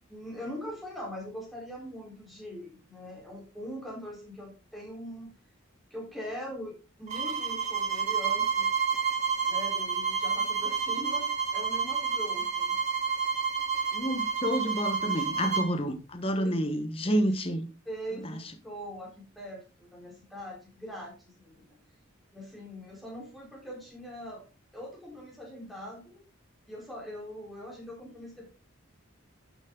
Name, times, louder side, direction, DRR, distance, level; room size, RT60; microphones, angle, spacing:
voice 1, 0.1-5.3 5.9-8.7 9.5-12.7 15.3-15.5 16.3-16.5 17.1-17.2 17.9-18.4 18.6-21.8 22.3-24.4 24.7-26.2 26.7-28.5, equal, ahead, 4.0 m, -42 dB
sound 1, 7.1-15.7, right 6 dB, 30° right, 2.3 m, -29 dB
voice 2, 13.9-17.7 18.2-18.4, equal, 25° left, 1.1 m, -29 dB
11.5 x 7.2 x 3.8 m
head